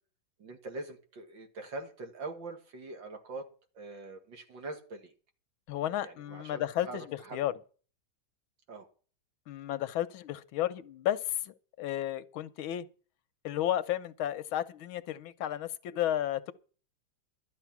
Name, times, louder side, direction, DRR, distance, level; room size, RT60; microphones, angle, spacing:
voice 1, 0.4-3.5 3.7-5.1 6.0-7.4 8.7-8.9, right 3 dB, 65° right, 2.7 m, -43 dB
voice 2, 5.7-7.0 7.3-7.5 9.5-12.9 13.4-16.5, left 12 dB, 85° left, 1.6 m, -33 dB
12.0 x 10.5 x 6.0 m
omnidirectional pair, 2.2 m